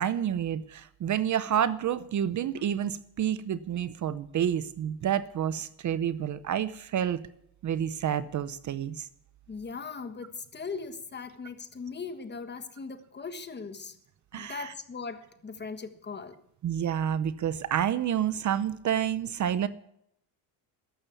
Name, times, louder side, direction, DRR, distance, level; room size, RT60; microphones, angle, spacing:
voice 1, 0.0-7.2 7.6-9.1 14.3-14.7 16.6-19.7, right 9 dB, 45° right, 0.8 m, -29 dB
voice 2, 9.5-14.0 14.3-16.4, left 5 dB, 25° left, 1.5 m, -39 dB
14.0 x 11.5 x 8.4 m
cardioid pair, 135°, 43 cm